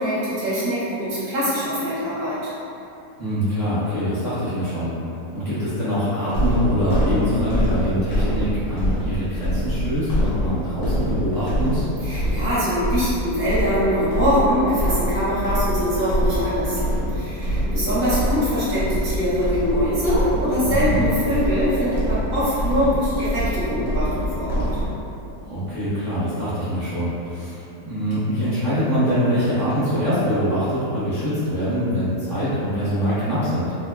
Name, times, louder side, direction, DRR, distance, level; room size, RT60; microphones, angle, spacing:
voice 1, 0.0-2.5 12.0-16.8 17.1-24.7, equal, 60° right, -12 dB, 1.0 m, -23 dB
voice 2, 3.2-4.9 5.3-11.8 20.6-21.0 25.5-33.7, equal, 35° right, -16 dB, 0.7 m, -24 dB
sound 1, 6.3-24.9, equal, 70° left, 1.1 m, -25 dB
3.1 x 2.1 x 2.2 m, 2.9 s
omnidirectional pair, 1.8 m